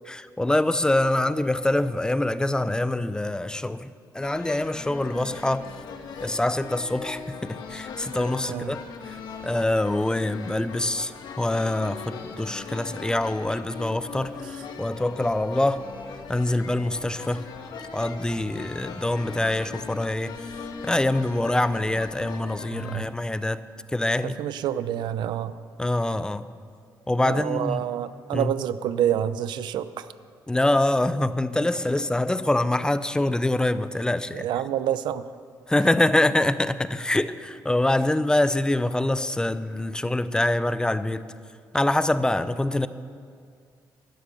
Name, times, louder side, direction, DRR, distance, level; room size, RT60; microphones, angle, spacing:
voice 1, 0.1-5.7 6.2-8.8 9.0-15.8 16.3-17.5 17.9-20.5 20.8-23.6 23.9-24.4 25.8-26.5 27.1-27.8 28.3-28.5 30.5-34.5 35.7-41.3 41.7-42.9, left 1 dB, 10° left, 14 dB, 0.4 m, -25 dB
sound 1, 4.2-23.0, left 5 dB, 70° left, 1.3 m, -40 dB
voice 2, 22.7-23.1 24.4-25.5 27.2-30.1 34.3-35.2, right 10 dB, 80° right, 14 dB, 0.5 m, -27 dB
11.5 x 10.5 x 6.7 m, 2.2 s
cardioid pair, 100°, 8 cm